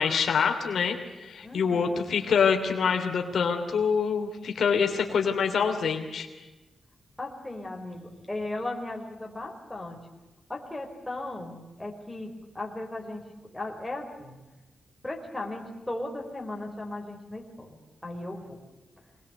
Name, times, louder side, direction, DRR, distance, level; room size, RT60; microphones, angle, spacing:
voice 1, 0.0-6.3, left 6 dB, 70° left, 4 dB, 2.9 m, -25 dB
voice 2, 1.4-2.0 7.2-10.0 10.5-13.2 13.5-14.4 15.0-18.6, left 2 dB, 10° left, 0 dB, 4.5 m, -37 dB
25.5 x 20.0 x 8.1 m, 1.1 s
wide cardioid pair, 125°, 0 cm